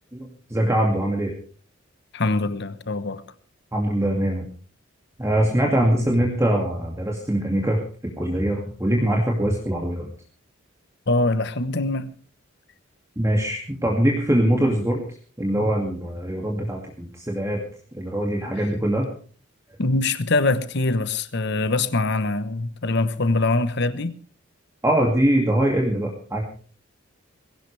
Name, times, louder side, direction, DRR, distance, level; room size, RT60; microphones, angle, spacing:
voice 1, 0.1-1.3 3.7-4.5 5.2-7.8 8.2-10.1 13.2-15.0 15.4-17.6 18.0-19.1 24.8-26.4, right 1 dB, 15° right, 2.3 m, -22 dB
voice 2, 2.1-3.2 11.1-12.1 19.8-24.2, left 2 dB, 55° left, 1.1 m, -23 dB
21.0 x 17.0 x 3.4 m
head